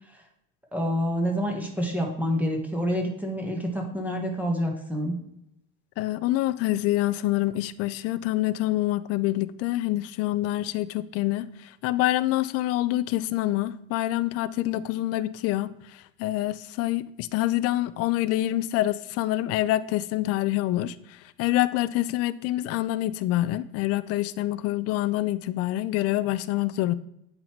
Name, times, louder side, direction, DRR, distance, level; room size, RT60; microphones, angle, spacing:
voice 1, 0.7-5.2, equal, 5° right, 1 dB, 1.3 m, -27 dB
voice 2, 6.0-11.5 11.8-15.7 16.2-21.0 21.4-26.9, left 15 dB, 55° left, 17 dB, 0.5 m, -26 dB
8.9 x 4.0 x 4.4 m, 0.78 s
supercardioid pair, 125°, 29 cm